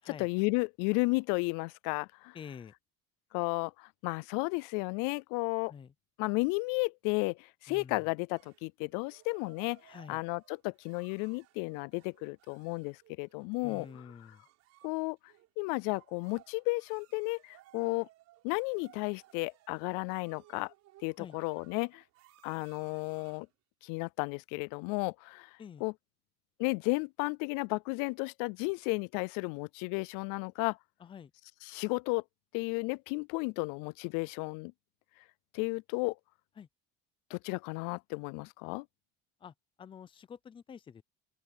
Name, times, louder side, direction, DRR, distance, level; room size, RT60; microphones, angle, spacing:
voice 1, 0.0-2.4 3.3-5.7 6.2-9.8 10.1-13.9 14.8-15.2 15.6-18.1 18.4-20.7 21.0-22.0 22.4-23.5 23.8-25.9 26.6-30.8 31.6-32.2 32.5-34.7 35.5-36.2 37.3-38.9, left 28 dB, 85° left, 0.5 m, -33 dB
voice 2, 2.3-2.7 5.7-5.9 7.7-8.0 9.9-10.2 13.6-14.4 21.2-21.4 25.6-25.8 31.0-31.3 36.6-36.7 39.4-41.0, left 7 dB, 15° left, 0.5 m, -48 dB
sound 1, 8.3-23.5, right 16 dB, 55° right, 6.9 m, -62 dB
open air
cardioid pair, 170°, 32 cm